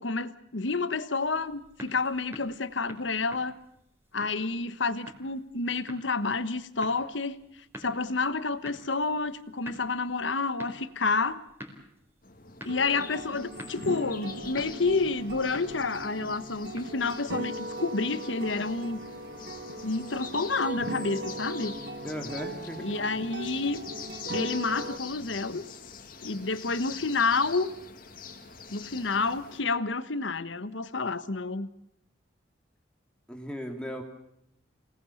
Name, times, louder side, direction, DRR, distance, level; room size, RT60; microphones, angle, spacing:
voice 1, 0.0-3.5 4.1-7.4 7.8-11.4 12.6-19.0 19.8-21.8 22.8-23.8 24.2-25.6 26.2-27.7 28.7-31.7, left 3 dB, 80° left, 13 dB, 1.2 m, -29 dB
sound 1, 1.3-17.7, equal, 10° right, 4.2 m, -50 dB
sound 2, 12.2-29.6, left 6 dB, 45° left, 2.2 m, -45 dB
sound 3, 12.7-25.0, right 1 dB, 60° right, 1.9 m, -39 dB
voice 2, 22.0-23.0 33.3-34.0, equal, 5° left, 3 dB, 2.4 m, -37 dB
27.0 x 18.5 x 7.1 m, 0.77 s
head